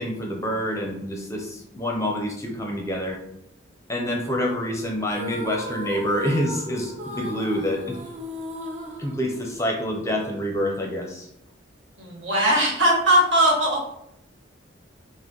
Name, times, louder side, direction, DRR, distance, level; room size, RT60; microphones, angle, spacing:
voice 1, 0.0-3.2 3.9-8.0 9.0-11.3, equal, 15° left, 1 dB, 0.6 m, -27 dB
sound 1, 5.1-9.9, equal, 35° right, 0.6 m, -36 dB
voice 2, 12.0-13.8, right 1 dB, 70° right, -3 dB, 1.7 m, -19 dB
6.1 x 2.2 x 3.8 m, 0.80 s
head